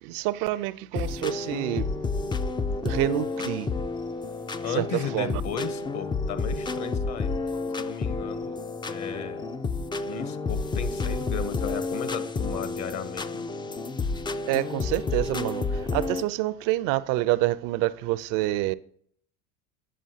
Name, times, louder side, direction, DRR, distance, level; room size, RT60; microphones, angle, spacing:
voice 1, 0.0-1.9 2.8-3.7 4.7-5.4 14.5-18.7, right 17 dB, 60° right, 0.5 m, -27 dB
sound 1, 0.9-16.2, left 3 dB, 15° left, 0.3 m, -30 dB
voice 2, 4.6-7.3 7.8-8.6 8.9-9.5 10.1-13.5, left 7 dB, 45° left, 1.0 m, -35 dB
8.5 x 7.2 x 2.8 m
hypercardioid pair, 75°, 38 cm